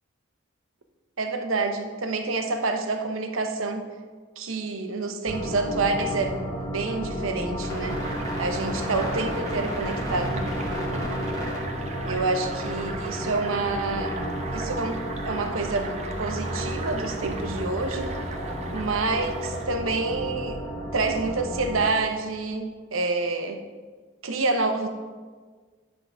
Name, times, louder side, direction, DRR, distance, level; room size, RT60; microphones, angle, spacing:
voice 1, 1.2-3.8 4.4-6.3 6.6-8.0 8.4-10.4 12.0-14.1 14.5-15.0 15.2-15.9 16.2-18.1 18.7-20.6 20.9-23.6 24.2-24.9, right 3 dB, 85° right, 6 dB, 0.9 m, -27 dB
sound 1, 5.3-21.9, equal, 15° left, 1.4 m, -32 dB
sound 2, 7.9-19.7, right 2 dB, 35° right, 0.8 m, -37 dB
10.5 x 3.8 x 6.0 m, 1.5 s
head